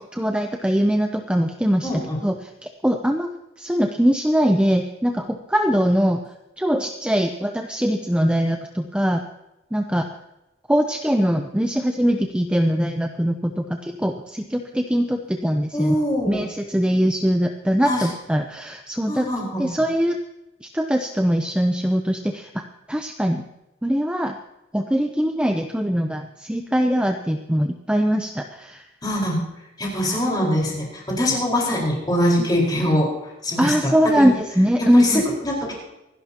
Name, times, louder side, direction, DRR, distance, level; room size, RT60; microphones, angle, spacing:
voice 1, 0.1-1.9 2.2-2.3 2.8-3.3 3.6-6.2 6.6-9.2 9.7-10.0 10.7-16.0 16.2-19.3 19.6-20.2 20.6-23.4 23.8-24.3 24.7-28.8 33.6-35.2, equal, 5° right, 4 dB, 0.6 m, -21 dB
voice 2, 1.8-2.2 15.7-16.4 17.8-18.1 19.1-19.7 29.0-29.4 29.8-33.1 33.4-34.3 34.8-35.7, equal, 20° left, -3 dB, 4.6 m, -23 dB
25.5 x 11.5 x 2.9 m, 0.94 s
head